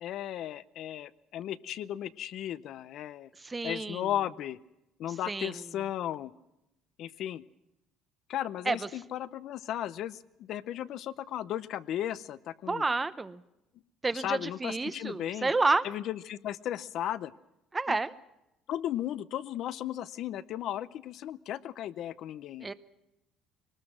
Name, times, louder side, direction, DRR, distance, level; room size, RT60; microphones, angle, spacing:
voice 1, 0.0-3.3 3.6-4.6 5.0-6.3 7.0-7.4 8.3-12.8 14.1-15.5 15.8-17.3 17.9-18.0 18.7-22.7, left 11 dB, 55° left, 16 dB, 0.7 m, -35 dB
voice 2, 3.4-4.1 5.3-5.6 8.7-8.9 12.7-13.4 14.0-15.9 17.7-18.1 22.6-22.7, right 3 dB, 15° right, 13 dB, 0.8 m, -30 dB
23.0 x 19.5 x 6.3 m, 0.91 s
cardioid pair, 140°, 0 cm